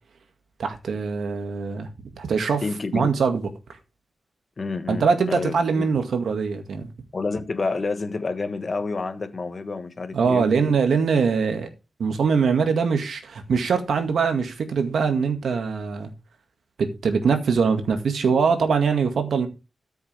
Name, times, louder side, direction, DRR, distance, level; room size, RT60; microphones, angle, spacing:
voice 1, 0.6-1.9 2.2-2.6 2.9-3.5 4.9-6.9 10.1-11.7 12.0-16.1 16.8-19.5, right 5 dB, 80° right, 2.0 m, -22 dB
voice 2, 2.6-3.1 4.6-5.9 7.1-10.5, left 3 dB, 40° left, 1.3 m, -29 dB
13.0 x 7.1 x 3.5 m
wide cardioid pair, 120°, 0 cm